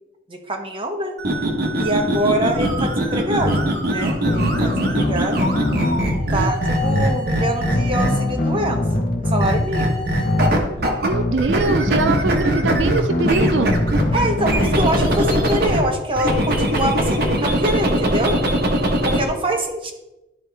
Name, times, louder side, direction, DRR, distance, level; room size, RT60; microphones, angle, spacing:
voice 1, 0.3-1.2 1.8-5.5 6.1-6.6 6.8-10.1 14.1-18.4 19.0-19.9, right 1 dB, 30° right, 3 dB, 1.0 m, -24 dB
sound 1, 1.2-8.4 9.4-11.1 11.4-15.8 16.2-19.2, right 1 dB, 55° right, 1.1 m, -21 dB
sound 2, 2.5-2.8 3.4-3.7 4.3-6.2 6.8-7.1 7.7-9.7 10.2-10.5 11.1-11.4 12.0-12.2 12.7-15.4, left 1 dB, 45° left, 0.9 m, -23 dB
voice 2, 11.0-13.8, right 3 dB, 80° right, 9 dB, 0.4 m, -23 dB
12.0 x 4.4 x 3.4 m, 0.97 s
head